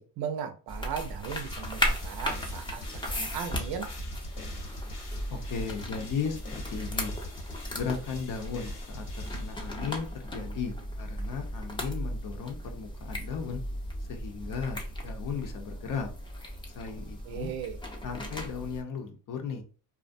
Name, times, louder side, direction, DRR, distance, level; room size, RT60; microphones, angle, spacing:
voice 1, 0.0-4.0 17.2-17.8, right 8 dB, 70° right, 0.6 m, -37 dB
sound 1, 0.7-18.8, equal, 15° left, 0.5 m, -36 dB
sound 2, 1.2-10.1, left 1 dB, 85° left, 1.0 m, -44 dB
voice 2, 5.3-7.2 7.7-13.6 14.1-16.1 16.7-17.5 18.0-19.6, left 6 dB, 55° left, 0.6 m, -36 dB
2.4 x 2.1 x 2.5 m
cardioid pair, 95°, 38 cm